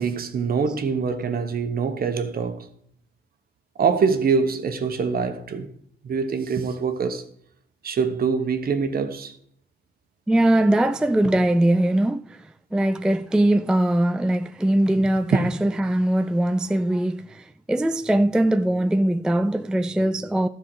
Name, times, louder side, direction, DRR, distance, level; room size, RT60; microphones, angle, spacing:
voice 1, 0.0-2.7 3.8-5.7 6.0-7.2 7.8-9.3 15.0-15.5, right 5 dB, 50° right, 1.2 m, -24 dB
voice 2, 10.3-20.5, right 1 dB, 5° right, 0.3 m, -21 dB
12.5 x 4.7 x 6.3 m
cardioid pair, 90°, 20 cm